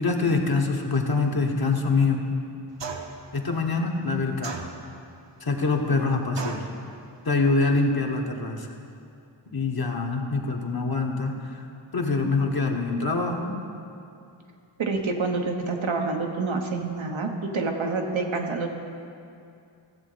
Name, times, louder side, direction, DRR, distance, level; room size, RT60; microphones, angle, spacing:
voice 1, 0.0-2.3 3.3-4.7 5.4-6.7 7.2-8.7 9.5-11.7 11.9-13.5, left 3 dB, 50° left, 1 dB, 1.4 m, -25 dB
sound 1, 2.8-3.3 4.4-5.1 6.4-6.8, right 5 dB, 65° right, 1.0 m, -35 dB
voice 2, 14.8-18.7, right 3 dB, 90° right, 2 dB, 1.1 m, -27 dB
15.0 x 7.4 x 4.0 m, 2.5 s
cardioid pair, 40°, 46 cm